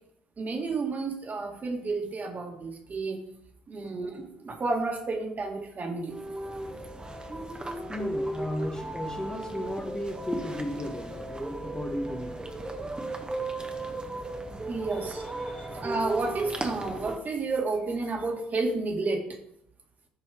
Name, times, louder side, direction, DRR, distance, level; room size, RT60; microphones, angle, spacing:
voice 1, 0.4-3.2 3.7-6.2 14.7-19.3, right 3 dB, 35° right, 2 dB, 2.2 m, -31 dB
sound 1, 6.1-17.2, right 2 dB, 15° right, 1.7 m, -36 dB
voice 2, 7.9-12.4 15.5-15.8, left 1 dB, 15° left, 3 dB, 1.6 m, -35 dB
15.0 x 5.3 x 4.8 m, 0.75 s
figure-of-eight pair, 50°, 5 cm